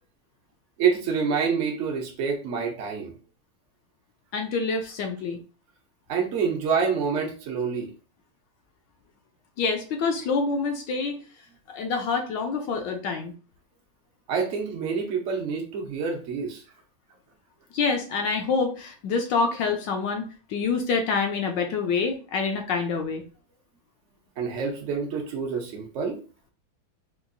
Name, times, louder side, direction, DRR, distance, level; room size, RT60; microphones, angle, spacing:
voice 1, 0.8-3.1 6.1-7.9 14.3-16.6 24.4-26.2, right 6 dB, 65° right, 1 dB, 0.7 m, -27 dB
voice 2, 4.3-5.4 9.6-11.2 11.7-13.3 17.7-23.2, left 4 dB, 75° left, 3 dB, 1.2 m, -26 dB
4.5 x 2.3 x 2.5 m, 0.36 s
omnidirectional pair, 2.2 m